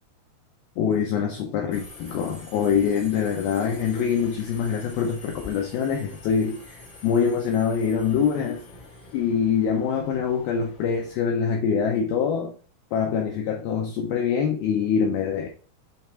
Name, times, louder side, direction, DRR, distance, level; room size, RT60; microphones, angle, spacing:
voice 1, 0.8-8.6 9.1-12.5 12.9-15.5, left 7 dB, 80° left, 1 dB, 2.2 m, -24 dB
Subway metro underground, 1.7-11.2, left 3 dB, 40° left, 1.6 m, -46 dB
6.9 x 3.4 x 4.4 m, 0.39 s
omnidirectional pair, 5.2 m